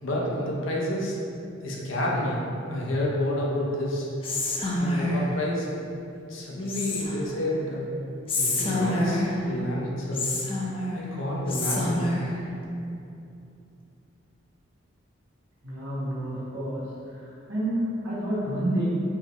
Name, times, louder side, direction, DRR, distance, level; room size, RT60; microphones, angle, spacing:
voice 1, 0.0-1.2 1.6-2.4 2.7-4.1 4.7-5.7 6.3-7.9 8.3-10.3 10.9-12.1, left 1 dB, 85° left, -4 dB, 0.8 m, -29 dB
Whispering, 4.2-5.3 6.7-7.4 8.3-9.5 10.1-11.1 11.5-12.3, left 2 dB, 30° left, 0.5 m, -27 dB
voice 2, 15.6-16.8 17.1-17.2 17.5-18.9, right 1 dB, 80° right, -10 dB, 1.2 m, -29 dB
4.4 x 3.3 x 3.0 m, 2.7 s
head